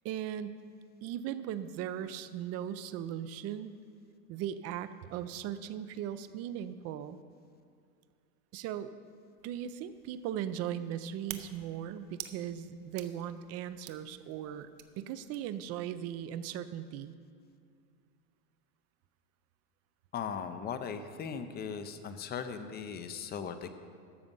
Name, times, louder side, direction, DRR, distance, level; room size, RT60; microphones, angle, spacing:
voice 1, 0.0-0.6 1.0-3.7 4.3-7.2 8.5-8.9 9.4-14.7 15.0-17.1, right 10 dB, 35° right, 13 dB, 0.4 m, -38 dB
sound 1, 9.4-15.7, right 12 dB, 60° right, 1.0 m, -51 dB
voice 2, 20.1-23.7, left 7 dB, 20° left, 10 dB, 0.5 m, -38 dB
13.0 x 6.9 x 5.4 m, 2.3 s
supercardioid pair, 115°, 49 cm